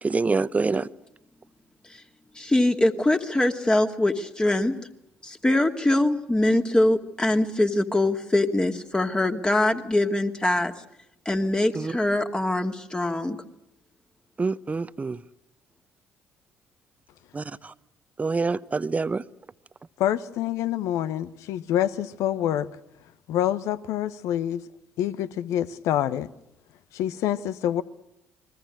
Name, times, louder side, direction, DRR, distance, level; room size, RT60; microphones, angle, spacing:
voice 1, 0.0-0.9 11.7-11.9 14.4-15.2 17.3-17.7 18.2-19.2, right 4 dB, 25° right, 1.0 m, -26 dB
voice 2, 2.4-4.8 5.2-10.7 11.3-13.4, left 1 dB, 15° left, 2.4 m, -23 dB
voice 3, 20.0-22.7 23.3-24.6 25.0-26.3 26.9-27.8, left 11 dB, 65° left, 1.1 m, -26 dB
29.5 x 22.0 x 6.4 m
figure-of-eight pair, 50°, 6 cm